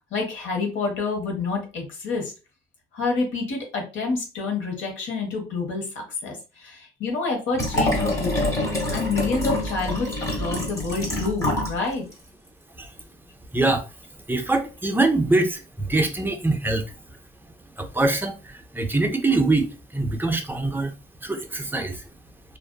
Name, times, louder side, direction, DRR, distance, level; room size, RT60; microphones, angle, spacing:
voice 1, 0.1-2.3 2.9-8.6 8.9-12.1, left 4 dB, 75° left, 1.1 m, -28 dB
Liquid, 7.5-11.8 12.1-12.2, left 1 dB, 15° left, 1.2 m, -26 dB
voice 2, 13.5-13.9 14.3-17.0 17.8-20.9 21.2-22.0, right 2 dB, 10° right, 0.5 m, -24 dB
2.5 x 2.5 x 2.2 m
cardioid pair, 90°, 20 cm